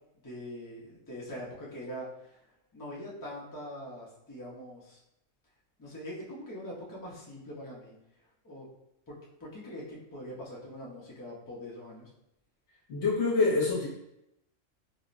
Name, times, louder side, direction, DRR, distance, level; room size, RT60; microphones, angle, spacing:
voice 1, 0.2-2.4 2.7-5.0 5.8-7.9 8.4-8.7 9.1-9.2 9.4-12.1, equal, 25° left, -5 dB, 0.4 m, -43 dB
voice 2, 12.9-13.9, left 3 dB, 60° left, -5 dB, 1.0 m, -26 dB
3.6 x 2.0 x 2.5 m, 0.84 s
omnidirectional pair, 1.4 m